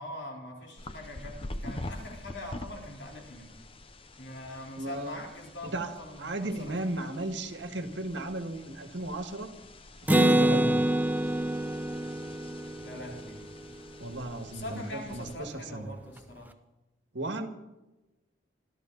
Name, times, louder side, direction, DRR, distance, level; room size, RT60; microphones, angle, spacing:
voice 1, 0.0-3.6 4.2-7.1 12.8-13.5 14.5-16.5, left 1 dB, 60° left, 0 dB, 3.8 m, -43 dB
sound 1, 0.8-15.4, left 1 dB, 25° left, 0.8 m, -46 dB
voice 2, 4.8-5.2 5.7-5.9 6.2-9.5 10.1-10.8 14.0-15.9 17.1-17.5, right 1 dB, 60° right, 6 dB, 1.8 m, -34 dB
Acoustic guitar, 10.1-13.7, right 1 dB, 10° right, 0.5 m, -26 dB
25.0 x 13.5 x 4.0 m, 1.0 s
head